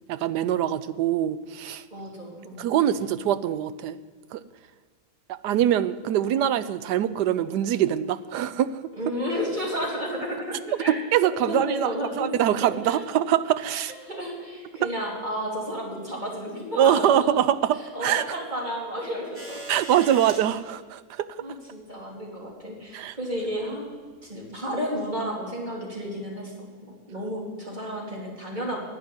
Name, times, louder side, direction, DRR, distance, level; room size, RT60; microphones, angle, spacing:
voice 1, 0.1-1.8 2.6-4.0 4.3-4.4 5.3-8.9 10.9-13.9 16.7-18.2 19.7-21.4 22.9-23.2, right 10 dB, 85° right, 14 dB, 1.2 m, -24 dB
voice 2, 1.9-2.7 6.2-6.3 9.0-10.9 11.5-12.3 12.6-13.0 13.7-17.3 17.9-19.6 21.4-24.0 24.2-26.5 26.8-28.8, equal, 25° right, -3 dB, 3.3 m, -32 dB
sound 1, 19.3-20.4 21.8-21.9 23.2-23.5 24.4-24.5, right 1 dB, 45° right, 2.9 m, -40 dB
11.0 x 10.5 x 9.7 m, 1.5 s
omnidirectional pair, 1.8 m